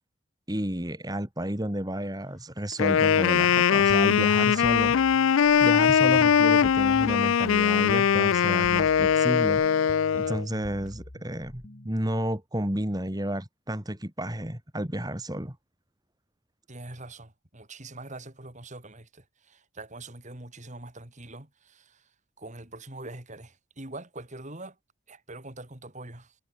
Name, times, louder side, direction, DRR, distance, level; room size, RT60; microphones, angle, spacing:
voice 1, 0.5-4.9 5.6-9.8 10.1-15.6, right 1 dB, 20° right, 2.5 m, -31 dB
Wind instrument woodwind instrument, 2.7-10.4, left 7 dB, 65° left, 0.4 m, -21 dB
sound 1, 3.9-11.9, left 1 dB, 45° left, 1.7 m, -45 dB
voice 2, 16.7-22.1 22.4-24.8 25.1-26.3, right 2 dB, 35° right, 3.0 m, -43 dB
head